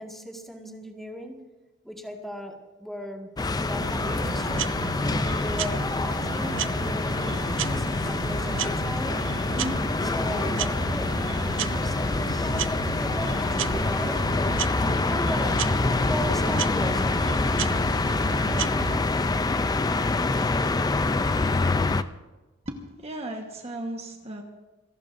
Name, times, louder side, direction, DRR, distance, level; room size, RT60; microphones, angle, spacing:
voice 1, 0.0-1.4 1.8-4.7 5.4-9.3 10.0-12.5 12.9-14.3 14.9-17.5 18.3-19.9, equal, ahead, 1 dB, 1.8 m, -38 dB
sound 1, 3.4-22.0, left 3 dB, 20° left, 0.4 m, -26 dB
sound 2, 3.8-19.0, right 7 dB, 70° right, 0.5 m, -34 dB
voice 2, 22.7-24.4, right 1 dB, 30° right, 2 dB, 1.3 m, -35 dB
27.0 x 18.0 x 2.6 m, 1.2 s
head